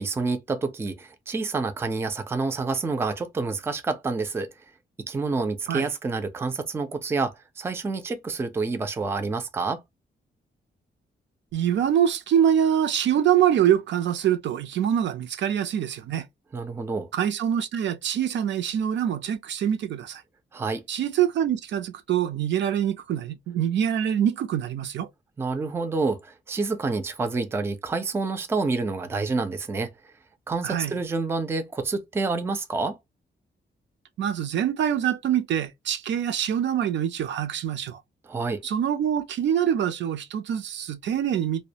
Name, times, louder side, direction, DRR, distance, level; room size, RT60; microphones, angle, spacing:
voice 1, 0.0-4.5 5.1-9.8 16.5-17.1 20.5-20.8 25.4-29.9 30.5-33.0 38.3-38.6, right 3 dB, 15° right, 0.3 m, -28 dB
voice 2, 11.5-16.2 17.1-20.2 20.9-25.1 30.6-30.9 34.2-38.0 38.6-41.6, right 9 dB, 75° right, 0.4 m, -24 dB
2.3 x 2.1 x 2.7 m
wide cardioid pair, 155°, 19 cm